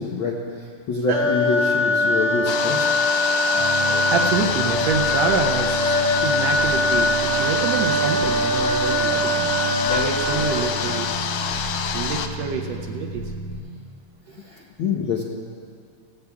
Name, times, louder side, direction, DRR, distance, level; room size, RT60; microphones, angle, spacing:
voice 1, 0.0-2.8 14.4-15.2, left 4 dB, 70° left, -2 dB, 1.2 m, -26 dB
sound 1, 1.1-11.0, left 1 dB, 45° right, 1.7 m, -22 dB
sound 2, 2.5-12.3, left 7 dB, 90° left, 1.3 m, -27 dB
sound 3, 3.5-13.6, right 2 dB, 45° left, 1.9 m, -32 dB
voice 2, 4.1-5.9 6.2-9.3 9.9-11.1 11.9-13.2, right 6 dB, 75° right, 3 dB, 1.6 m, -26 dB
16.5 x 16.5 x 2.3 m, 2.2 s
omnidirectional pair, 3.4 m